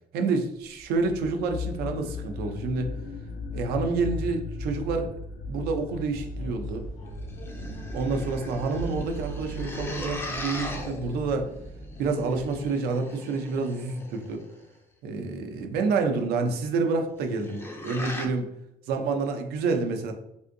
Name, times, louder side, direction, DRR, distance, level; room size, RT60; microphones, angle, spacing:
voice 1, 0.1-2.9 3.5-5.1 5.5-6.8 7.9-11.5 12.0-14.4 15.0-18.5 18.9-20.1, right 4 dB, 85° right, 5 dB, 0.6 m, -28 dB
sound 1, 0.8-11.4, left 2 dB, 65° left, 0.7 m, -37 dB
sound 2, 6.1-12.7, right 1 dB, 90° left, 1.1 m, -44 dB
sound 3, 7.1-14.7 17.1-18.3, left 1 dB, 15° left, 0.4 m, -39 dB
3.4 x 2.6 x 2.6 m, 0.82 s
cardioid pair, 150°, 16 cm